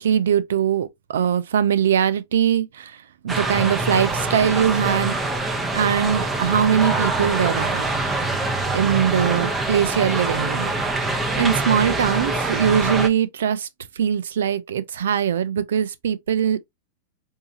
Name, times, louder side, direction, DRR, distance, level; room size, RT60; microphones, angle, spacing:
voice 1, 0.0-5.2 5.7-7.8 8.7-10.7 11.4-13.7 14.0-16.6, right 8 dB, 85° right, 0.5 m, -21 dB
sound 1, 3.3-13.1, right 2 dB, 15° right, 0.9 m, -24 dB
4.7 x 2.8 x 2.9 m
hypercardioid pair, 125°, 0 cm